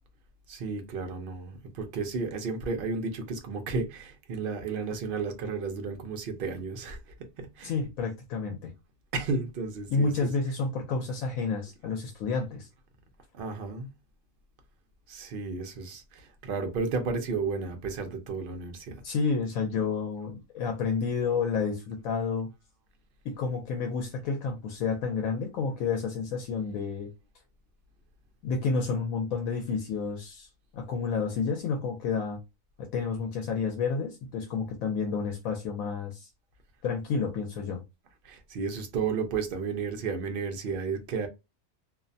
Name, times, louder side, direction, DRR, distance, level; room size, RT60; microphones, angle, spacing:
voice 1, 0.5-7.0 7.4-7.7 9.1-10.1 13.3-13.9 15.1-19.0 38.2-41.3, right 4 dB, 60° right, 0.6 m, -33 dB
voice 2, 7.6-8.7 9.9-12.7 19.0-22.5 23.2-27.1 28.4-30.5 30.7-32.4 32.8-36.3 36.8-37.8, left 5 dB, 80° left, 1.0 m, -30 dB
2.5 x 2.1 x 2.6 m
omnidirectional pair, 1.4 m